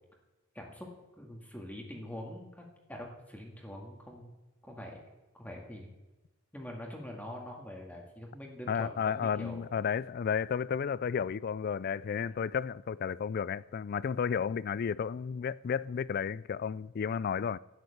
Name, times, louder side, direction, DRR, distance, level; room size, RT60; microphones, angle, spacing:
voice 1, 0.5-0.9 1.2-4.3 4.6-5.0 5.3-5.9 6.5-9.6 12.2-12.3, left 1 dB, 10° left, 1.9 m, -44 dB
voice 2, 8.7-17.6, left 7 dB, 50° left, 0.3 m, -32 dB
11.5 x 9.7 x 7.9 m
head